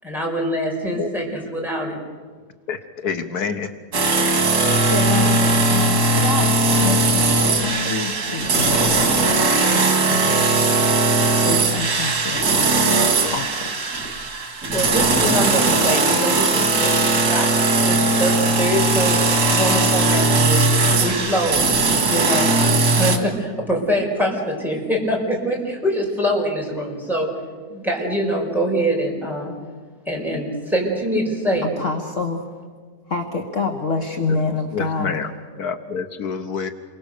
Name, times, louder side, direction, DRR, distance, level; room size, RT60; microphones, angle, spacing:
voice 1, 0.0-2.0 14.7-19.2 19.5-20.6 21.0-21.6 22.0-22.5 23.0-27.3 27.7-29.5 30.0-31.7, equal, ahead, -2 dB, 5.2 m, -24 dB
voice 2, 2.7-3.7 34.7-35.3 35.6-36.7, left 5 dB, 75° left, 8 dB, 1.6 m, -27 dB
sound 1, 3.9-23.2, right 3 dB, 85° right, 2.8 m, -18 dB
voice 3, 4.9-8.9 9.7-10.5 11.3-13.7 31.6-32.4 33.1-35.2, left 4 dB, 50° left, 3 dB, 1.9 m, -27 dB
28.5 x 23.0 x 6.8 m, 1.5 s
omnidirectional pair, 1.7 m